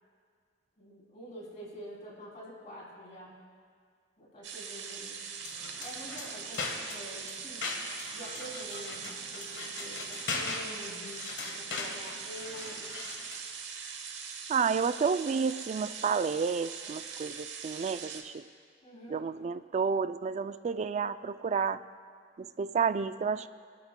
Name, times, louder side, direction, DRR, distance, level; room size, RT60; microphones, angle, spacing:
voice 1, 0.8-3.4 4.2-5.2 5.8-7.7 8.1-12.9 18.8-19.3, equal, 40° left, -4 dB, 3.3 m, -47 dB
sound 1, 4.4-18.2, right 6 dB, 75° right, 1.1 m, -42 dB
sound 2, 5.4-13.5, left 3 dB, 75° left, 1.4 m, -40 dB
voice 2, 14.5-18.4 19.1-21.8 22.4-23.5, right 5 dB, 40° right, 13 dB, 0.3 m, -30 dB
21.0 x 11.5 x 2.2 m, 2.1 s
head